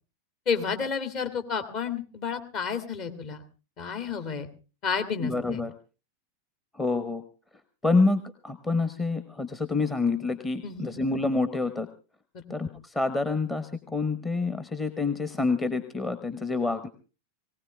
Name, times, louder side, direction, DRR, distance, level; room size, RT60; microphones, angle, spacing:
voice 1, 0.5-3.4 3.8-4.5 4.8-5.6 10.6-10.9 12.5-12.6, left 6 dB, 40° left, 7 dB, 2.5 m, -31 dB
voice 2, 5.2-5.7 6.7-7.2 7.8-11.9 12.5-16.9, left 3 dB, 15° left, 9 dB, 1.2 m, -27 dB
19.5 x 18.5 x 3.4 m, 0.34 s
figure-of-eight pair, 90°, 0 cm